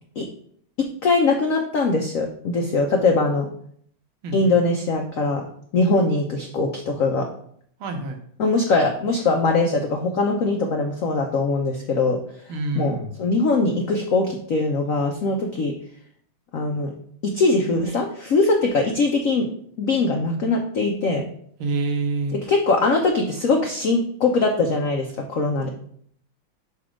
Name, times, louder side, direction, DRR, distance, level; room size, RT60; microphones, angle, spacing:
voice 1, 1.0-3.5 4.3-5.4 5.7-7.3 8.4-12.2 12.7-15.7 16.5-16.9 17.2-19.5 19.8-21.2 22.5-25.7, left 3 dB, 80° left, 2 dB, 0.7 m, -21 dB
voice 2, 4.2-4.6 7.8-8.2 12.5-13.1 21.6-22.4 25.6-25.7, right 3 dB, 70° right, 5 dB, 1.7 m, -27 dB
5.9 x 4.2 x 5.0 m, 0.63 s
omnidirectional pair, 2.3 m